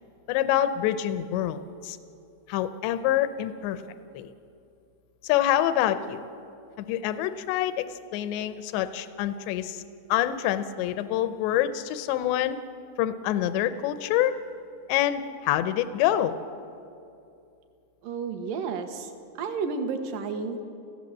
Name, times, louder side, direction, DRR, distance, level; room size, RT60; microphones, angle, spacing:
voice 1, 0.3-2.0 2.5-3.8 4.1-4.3 5.2-6.2 6.8-9.8 10.1-12.6 13.0-14.4 14.9-16.4, left 12 dB, 85° left, 11 dB, 3.0 m, -26 dB
voice 2, 18.0-19.1 19.4-20.6, right 5 dB, 60° right, 6 dB, 2.7 m, -31 dB
29.5 x 16.0 x 7.5 m, 2.5 s
omnidirectional pair, 5.0 m